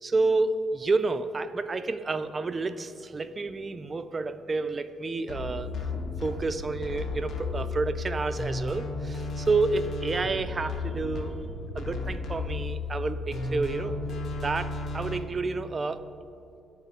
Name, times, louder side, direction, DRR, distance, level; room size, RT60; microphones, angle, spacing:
voice 1, 0.0-5.7 6.2-11.4 11.7-14.0 14.4-16.0, right 3 dB, 30° right, 11 dB, 0.3 m, -29 dB
sound 1, 5.3-15.2, left 3 dB, 60° left, 0.7 m, -34 dB
11.5 x 4.0 x 2.8 m, 2.8 s
cardioid pair, 90°, 0 cm